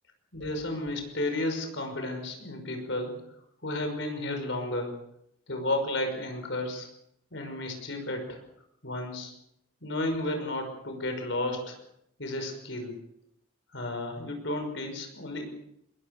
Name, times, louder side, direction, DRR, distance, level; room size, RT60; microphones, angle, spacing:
voice 1, 0.3-3.1 3.6-5.0 5.5-6.9 7.3-8.4 8.8-9.3 9.8-11.8 12.2-12.9 13.7-15.4, left 1 dB, 60° left, 5 dB, 5.8 m, -32 dB
21.5 x 21.5 x 6.8 m, 0.76 s
head